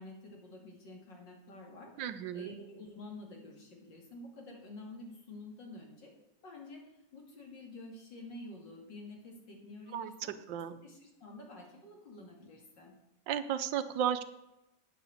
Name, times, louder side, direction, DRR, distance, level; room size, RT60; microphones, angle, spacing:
voice 1, 0.0-6.1 6.4-6.8 7.1-10.4 10.8-12.9, left 2 dB, 70° left, 0 dB, 3.0 m, -49 dB
voice 2, 2.0-2.5 9.9-10.1 10.5-10.7 13.3-14.2, right 9 dB, 75° right, 11 dB, 1.4 m, -33 dB
8.8 x 7.0 x 7.8 m, 0.93 s
omnidirectional pair, 2.0 m